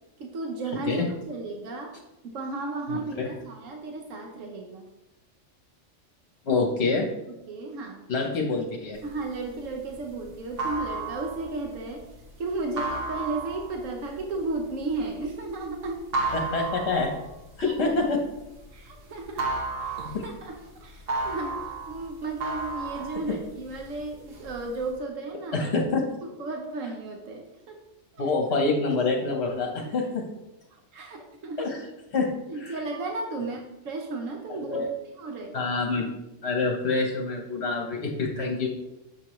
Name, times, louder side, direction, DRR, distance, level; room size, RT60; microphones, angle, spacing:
voice 1, 0.2-1.9 2.2-4.8 7.3-8.0 9.0-12.1 12.4-16.4 17.6-17.7 18.7-19.5 19.8-25.7 26.2-27.8 28.1-28.2 30.7-31.7 32.5-34.9 35.2-35.6, right 3 dB, 80° right, 2 dB, 1.2 m, -34 dB
voice 2, 2.9-3.3 6.4-7.1 8.1-9.0 16.3-17.1 17.6-18.2 20.1-20.2 25.5-26.1 28.2-30.2 31.6-31.8 32.1-32.3 32.6-32.8 34.7-34.9 35.5-36.1 36.4-38.7, left 3 dB, 60° left, 0 dB, 1.2 m, -26 dB
sound 1, 9.1-18.9 19.2-23.9 24.3-24.9, right 3 dB, 50° right, 1.4 m, -33 dB
7.6 x 6.6 x 3.1 m, 0.95 s
omnidirectional pair, 1.3 m